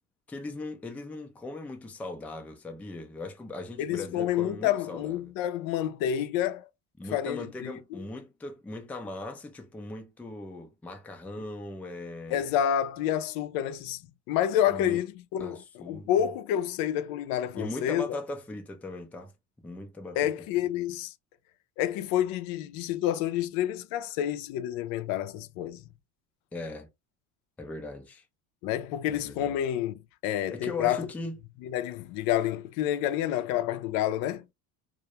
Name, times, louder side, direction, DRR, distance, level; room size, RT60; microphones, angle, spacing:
voice 1, 0.3-5.3 7.0-12.5 14.7-15.0 15.4-16.2 17.5-19.3 19.6-20.3 26.5-26.9 27.6-28.2 29.1-29.6 30.5-31.4, left 2 dB, 5° left, 0.3 m, -39 dB
voice 2, 3.8-6.7 7.1-7.7 12.3-14.0 14.3-18.2 20.2-21.1 21.8-25.8 28.6-29.9 30.2-31.1 31.6-34.4, left 11 dB, 70° left, 0.5 m, -29 dB
2.2 x 2.1 x 2.8 m
supercardioid pair, 110°, 37 cm